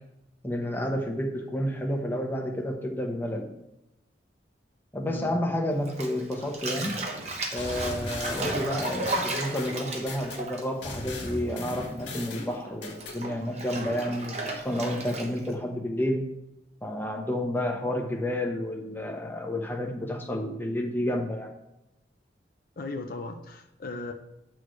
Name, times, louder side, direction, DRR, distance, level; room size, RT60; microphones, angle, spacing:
voice 1, 0.4-3.5 4.9-7.0 7.5-16.2 16.8-21.5, left 1 dB, 10° left, 2 dB, 0.8 m, -30 dB
voice 2, 5.0-5.4 22.8-24.1, left 2 dB, 55° left, 4 dB, 0.6 m, -37 dB
Bathtub (filling or washing), 5.9-11.7 12.0-15.5, right 2 dB, 40° right, 1.1 m, -34 dB
sound 1, 7.6-10.4 10.8-13.2, left 2 dB, 80° left, 1.7 m, -37 dB
8.2 x 6.3 x 3.2 m, 0.87 s
head